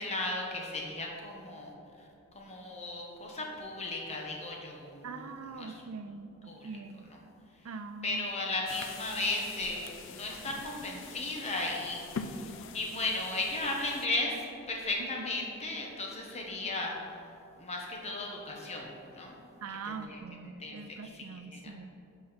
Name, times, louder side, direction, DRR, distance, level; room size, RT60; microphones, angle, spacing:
voice 1, 0.0-1.7 2.3-5.2 5.5-5.8 6.5-6.7 8.0-12.3 12.7-17.0 17.6-19.3 19.8-20.2 20.6-20.8 21.2-21.3 21.5-21.6, left 2 dB, 30° left, -1 dB, 1.3 m, -35 dB
voice 2, 5.0-7.1 7.6-8.2 19.6-21.9, right 5 dB, 75° right, 10 dB, 0.5 m, -43 dB
sound 1, 8.7-14.1, left 5 dB, 60° left, 0.5 m, -44 dB
11.5 x 4.9 x 4.2 m, 2.7 s
head